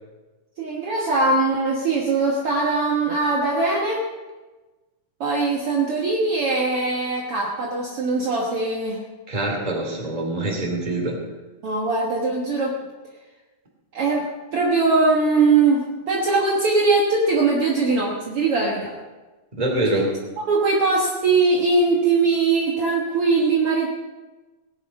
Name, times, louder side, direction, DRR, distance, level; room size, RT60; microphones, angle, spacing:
voice 1, 0.6-4.0 5.2-9.0 11.6-12.8 13.9-14.3 14.5-18.9 20.4-23.9, right 3 dB, 55° right, -2 dB, 2.1 m, -21 dB
voice 2, 9.3-11.2 19.5-20.1, right 1 dB, 15° right, 0 dB, 2.5 m, -24 dB
17.5 x 9.9 x 5.4 m, 1.2 s
omnidirectional pair, 3.5 m